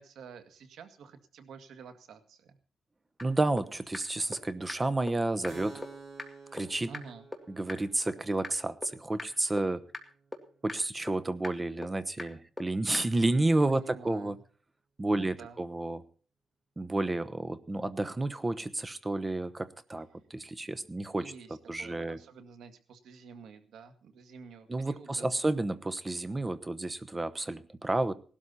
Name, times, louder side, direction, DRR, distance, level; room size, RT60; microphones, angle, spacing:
voice 1, 0.0-2.6 6.9-7.3 13.7-14.4 15.1-15.6 21.2-25.3, right 6 dB, 85° right, 8 dB, 2.0 m, -49 dB
sound 1, 3.2-3.3 3.6-3.7 3.9-4.0 4.3-4.4 4.7-4.8 5.1-5.2 5.4-5.5 5.8-5.9 6.2-6.3 6.6-6.7 6.9-7.0 7.3-7.4 7.7-7.8 8.1-8.2 8.4-8.5 8.8-8.9 9.2-9.3 9.6-9.7 9.9-10.0 10.3-10.4 10.7-10.8 11.1-11.2 11.4-11.5 11.8-11.9 12.2-12.3 12.6-12.7 12.9-13.0, left 2 dB, 10° left, 2.1 m, -37 dB
voice 2, 3.2-5.8 6.5-6.9 7.5-9.8 10.6-14.4 15.0-16.0 16.8-21.3 21.7-22.2 24.7-28.1, right 2 dB, 20° right, 15 dB, 0.9 m, -31 dB
Keyboard (musical), 5.5-12.8, right 4 dB, 45° right, 7.2 m, -53 dB
18.5 x 12.5 x 4.2 m, 0.41 s
cardioid pair, 125°, 0 cm